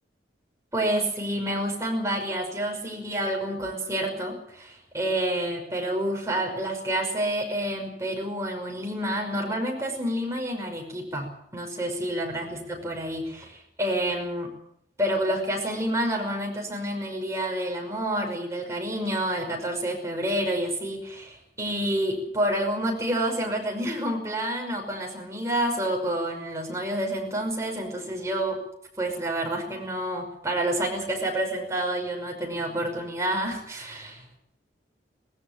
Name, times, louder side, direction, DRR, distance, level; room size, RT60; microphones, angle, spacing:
voice 1, 0.7-14.5 15.0-28.6 29.0-34.4, right 1 dB, 15° right, 0 dB, 5.6 m, -29 dB
18.5 x 17.0 x 9.0 m, 0.75 s
head